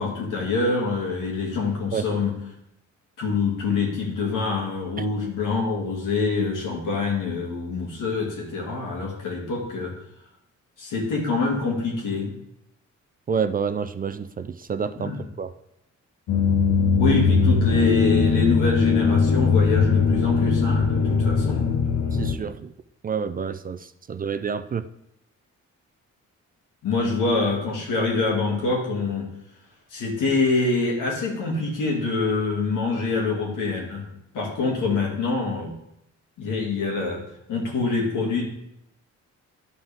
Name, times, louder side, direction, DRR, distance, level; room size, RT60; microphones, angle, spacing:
voice 1, 0.0-2.3 3.2-9.9 10.8-12.3 15.0-15.2 17.0-21.8 26.8-29.3 29.9-34.1 34.3-35.7 36.4-37.2 37.5-38.5, left 4 dB, 85° left, -2 dB, 2.3 m, -25 dB
voice 2, 13.3-15.5 22.1-22.7 23.0-24.8, right 6 dB, 30° right, 11 dB, 0.4 m, -28 dB
sound 1, 16.3-22.3, left 5 dB, 70° left, 1.1 m, -20 dB
11.0 x 5.5 x 3.5 m, 0.81 s
cardioid pair, 95°, 31 cm